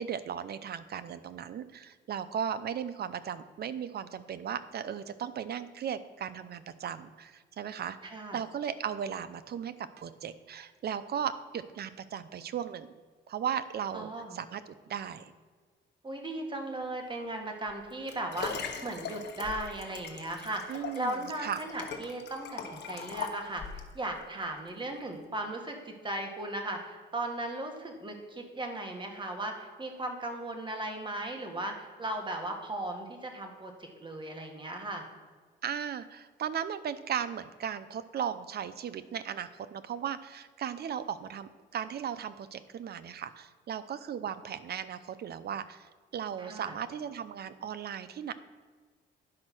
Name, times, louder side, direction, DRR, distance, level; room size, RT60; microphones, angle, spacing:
voice 1, 0.0-13.0 13.3-15.3 20.7-21.6 35.6-48.3, right 8 dB, 55° right, 13 dB, 0.6 m, -36 dB
voice 2, 8.0-8.4 13.9-14.4 16.0-23.6 23.9-35.0 46.4-46.8, right 1 dB, 25° right, 3 dB, 1.8 m, -37 dB
Liquid, 17.7-23.9 24.6-24.7, left 6 dB, 60° left, 1.2 m, -41 dB
11.0 x 5.4 x 6.1 m, 1.5 s
cardioid pair, 90°, 20 cm